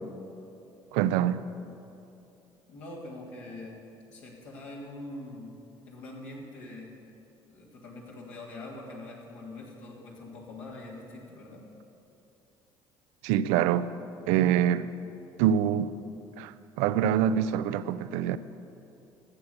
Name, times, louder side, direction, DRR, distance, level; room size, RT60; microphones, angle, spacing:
voice 1, 0.9-1.4 13.2-13.9 14.3-14.9 15.4-15.9 16.4-18.4, right 10 dB, 70° right, 0.5 m, -25 dB
voice 2, 2.7-3.8 4.1-5.5 5.9-6.9 7.5-11.7, left 2 dB, 65° left, 2.9 m, -43 dB
13.0 x 8.1 x 8.0 m
hypercardioid pair, 55°, 12 cm